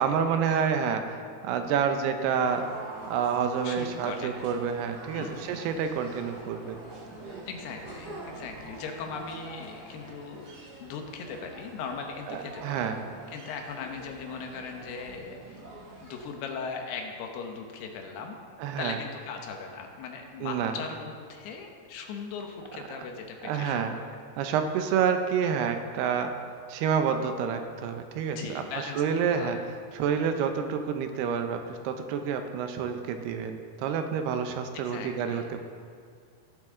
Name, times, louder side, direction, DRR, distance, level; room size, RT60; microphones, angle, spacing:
voice 1, 0.0-2.7 3.1-6.8 12.3-13.0 18.6-19.0 20.4-20.7 23.4-24.0 24.4-26.4 26.7-28.6 29.0-29.6 29.9-35.6, right 7 dB, 85° right, 7 dB, 2.8 m, -28 dB
sound 1, 2.3-16.2, right 2 dB, 35° right, 1.8 m, -46 dB
sound 2, 2.4-10.1, left 1 dB, 45° left, 3.1 m, -52 dB
voice 2, 3.6-4.4 5.1-5.6 7.5-10.5 10.8-12.8 13.3-15.6 16.0-18.4 18.8-24.1 28.3-29.0 29.3-29.6 34.7-35.5, left 5 dB, 85° left, 3 dB, 3.1 m, -39 dB
18.0 x 7.6 x 3.7 m, 2.1 s
omnidirectional pair, 4.6 m